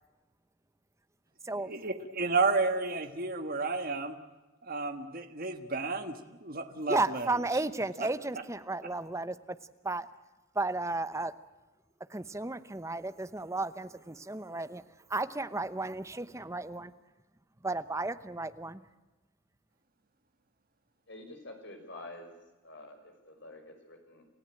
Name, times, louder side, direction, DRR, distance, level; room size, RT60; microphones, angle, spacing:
voice 1, 1.7-4.1 4.6-6.1 6.4-7.3 8.0-8.1, right 3 dB, 45° right, 1.5 m, -31 dB
voice 2, 6.9-9.4 9.8-10.1 10.5-11.3 12.1-14.8 15.1-16.9 17.6-18.8, right 2 dB, 15° right, 0.9 m, -33 dB
voice 3, 21.1-22.4 22.6-24.3, left 1 dB, 55° left, 5.4 m, -48 dB
28.5 x 15.5 x 9.0 m
head